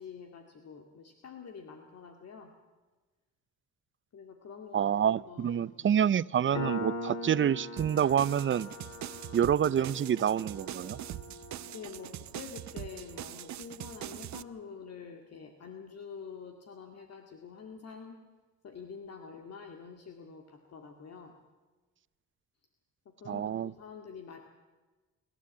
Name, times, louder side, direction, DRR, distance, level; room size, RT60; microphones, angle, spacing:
voice 1, 0.0-2.5 4.1-6.0 6.4-6.5 11.7-18.2 18.6-21.4 23.1-24.4, left 5 dB, 55° left, 2.2 m, -47 dB
voice 2, 4.7-8.7 9.3-11.0 23.3-23.7, right 9 dB, 40° right, 0.6 m, -27 dB
Piano, 6.5-13.7, left 1 dB, 85° left, 3.4 m, -42 dB
sound 1, 7.8-14.4, right 13 dB, 70° right, 0.8 m, -43 dB
27.0 x 13.0 x 8.6 m
cardioid pair, 90°, 30 cm